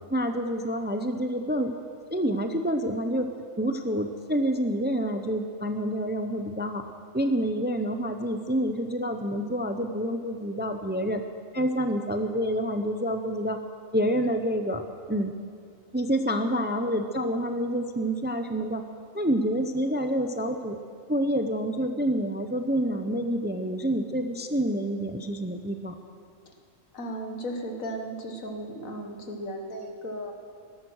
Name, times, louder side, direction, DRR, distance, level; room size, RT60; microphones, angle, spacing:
voice 1, 0.1-1.7 2.1-6.9 7.1-11.2 11.5-13.6 13.9-14.8 15.1-15.3 15.9-18.8 19.1-20.8 21.1-26.0, equal, 10° right, 6 dB, 0.6 m, -28 dB
voice 2, 26.9-30.3, equal, 85° left, 3 dB, 2.1 m, -35 dB
16.0 x 13.0 x 6.4 m, 2.2 s
omnidirectional pair, 1.4 m